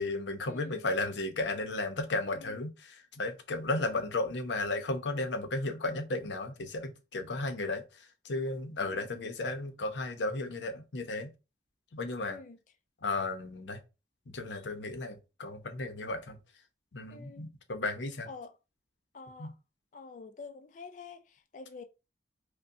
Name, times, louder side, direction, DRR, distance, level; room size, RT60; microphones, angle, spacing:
voice 1, 0.0-11.3 11.9-12.4 13.0-13.8 14.3-16.4 16.9-18.3 19.4-19.5, left 2 dB, 85° left, 0.7 m, -34 dB
voice 2, 2.2-2.6 8.8-9.0 12.3-12.6 17.1-17.5 18.3-18.6 19.1-19.5 19.9-21.8, left 4 dB, 45° left, 0.3 m, -47 dB
5.3 x 2.2 x 2.6 m
head